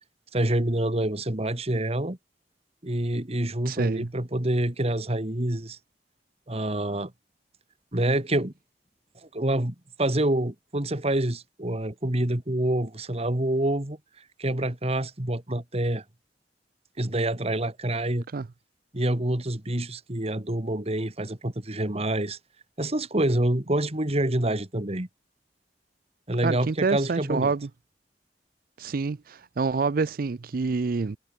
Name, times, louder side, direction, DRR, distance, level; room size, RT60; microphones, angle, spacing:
voice 1, 0.3-2.2 2.8-5.8 6.5-7.1 7.9-8.5 9.3-14.0 14.4-16.0 17.0-18.2 18.9-22.4 22.8-25.1 26.3-27.5, right 1 dB, 35° right, 2.0 m, -27 dB
voice 2, 3.7-4.1 18.3-18.5 26.4-27.7 28.8-31.2, right 4 dB, 55° right, 0.5 m, -27 dB
head